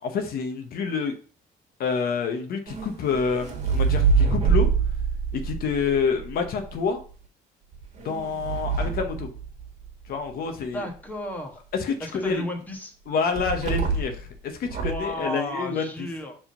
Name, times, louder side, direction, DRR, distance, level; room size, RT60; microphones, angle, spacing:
voice 1, 0.0-1.1 1.8-4.7 5.3-7.0 8.0-9.3 10.1-10.8 11.7-12.4 13.1-15.9, left 5 dB, 60° left, 5 dB, 0.9 m, -27 dB
sound 1, 2.7-6.8 7.7-10.1 13.4-14.2 14.6-15.1, right 5 dB, 40° right, 1.8 m, -25 dB
voice 2, 10.7-11.6 12.0-12.9 14.8-16.4, equal, 10° left, 2 dB, 1.4 m, -33 dB
4.9 x 3.7 x 5.5 m, 0.41 s
cardioid pair, 110°, 17 cm